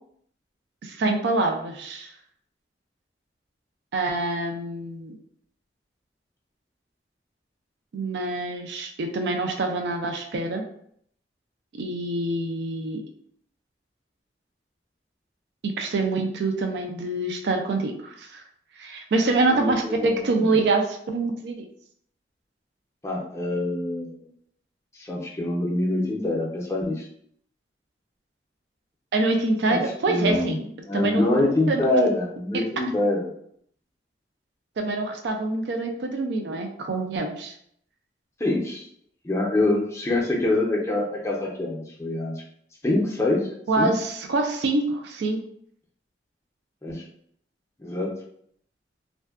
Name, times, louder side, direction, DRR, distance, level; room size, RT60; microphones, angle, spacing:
voice 1, 0.8-2.1 3.9-5.2 7.9-10.6 11.7-13.0 15.6-18.4 18.7-21.7 29.1-30.6 30.9-31.2 31.7-31.8 32.5-32.6 34.8-37.5 43.7-45.4, right 2 dB, 75° right, 4 dB, 0.4 m, -25 dB
voice 2, 19.5-20.6 23.0-24.3 24.9-27.1 29.7-29.8 30.1-33.3 38.4-38.9 39.2-42.4 42.8-43.5 43.8-43.9 46.8-47.0 47.8-48.1, left 2 dB, 15° left, -2 dB, 0.5 m, -25 dB
2.5 x 2.2 x 2.3 m, 0.67 s
head